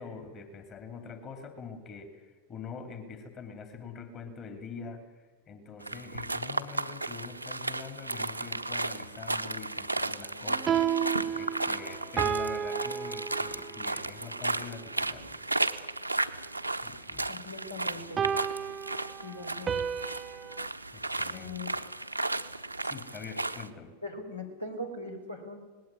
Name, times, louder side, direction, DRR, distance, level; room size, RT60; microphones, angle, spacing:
voice 1, 0.0-10.9 11.3-15.5 16.8-17.3 20.9-21.6 22.8-23.9, left 5 dB, 30° left, 7 dB, 2.8 m, -44 dB
sound 1, 5.8-23.7, right 2 dB, 85° right, 0.9 m, -34 dB
sound 2, 10.5-13.9 18.2-20.7, right 8 dB, 25° right, 0.7 m, -32 dB
voice 2, 17.3-18.2 19.2-19.8 21.3-21.7 24.0-25.6, left 2 dB, 85° left, 3 dB, 4.1 m, -40 dB
19.5 x 17.0 x 9.6 m, 1.4 s
figure-of-eight pair, 90°, 0 cm